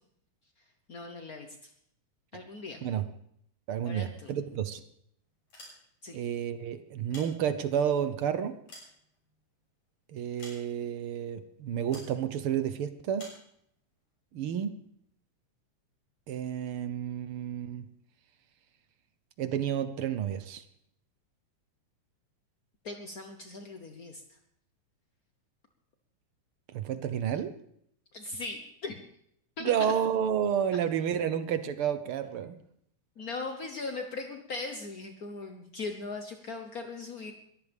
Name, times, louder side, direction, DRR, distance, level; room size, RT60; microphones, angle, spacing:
voice 1, 0.9-1.7 2.3-2.8 3.8-4.3 6.0-6.2 22.8-24.2 28.1-29.0 29.6-29.9 33.2-37.3, left 3 dB, 75° left, 5 dB, 0.8 m, -39 dB
voice 2, 3.7-4.8 6.1-8.6 10.1-13.2 14.3-14.7 16.3-17.8 19.4-20.6 26.7-27.5 29.6-32.6, right 8 dB, 65° right, 11 dB, 1.4 m, -30 dB
sound 1, 5.4-6.2 6.9-7.9 8.4-9.6 10.4-11.0 11.9-12.2 13.2-13.5, left 1 dB, 60° left, 8.2 m, -50 dB
22.0 x 15.0 x 3.5 m, 0.70 s
omnidirectional pair, 3.4 m